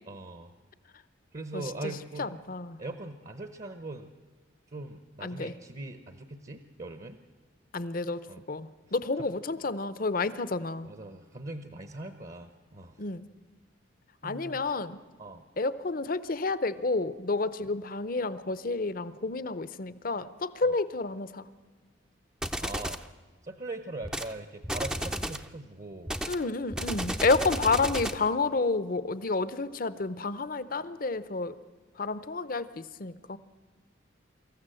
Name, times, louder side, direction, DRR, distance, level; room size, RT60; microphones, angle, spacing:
voice 1, 0.0-0.5 1.3-2.3 2.8-4.1 4.7-7.2 8.3-8.4 9.2-9.3 10.8-13.0 14.2-14.6 15.2-15.4 20.6-20.7 22.6-23.0 23.4-26.1, right 2 dB, 40° right, 9 dB, 0.9 m, -41 dB
voice 2, 2.2-2.8 5.2-5.5 7.7-10.9 13.0-13.2 14.2-15.0 15.6-21.5 26.3-31.5 32.0-33.4, left 3 dB, 45° left, 15 dB, 0.7 m, -30 dB
sound 1, 22.4-23.1 24.0-24.3 24.6-25.5 26.1-28.3, equal, 5° right, 0.5 m, -33 dB
25.0 x 14.0 x 7.8 m, 1.4 s
head